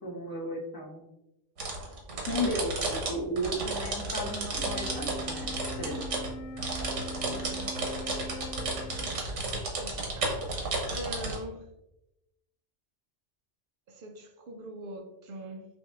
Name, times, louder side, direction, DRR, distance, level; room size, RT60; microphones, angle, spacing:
voice 1, 0.0-1.0 2.3-6.2 7.2-7.4, equal, 20° left, -4 dB, 0.9 m, -35 dB
sound 1, 1.6-11.4, right 2 dB, 90° right, 1.3 m, -33 dB
Wind instrument woodwind instrument, 4.5-9.3, equal, 85° left, 0.9 m, -42 dB
voice 2, 7.2-8.1 9.8-11.6 13.9-15.7, right 1 dB, 60° right, 5 dB, 0.6 m, -43 dB
5.9 x 2.6 x 2.3 m, 0.91 s
omnidirectional pair, 1.2 m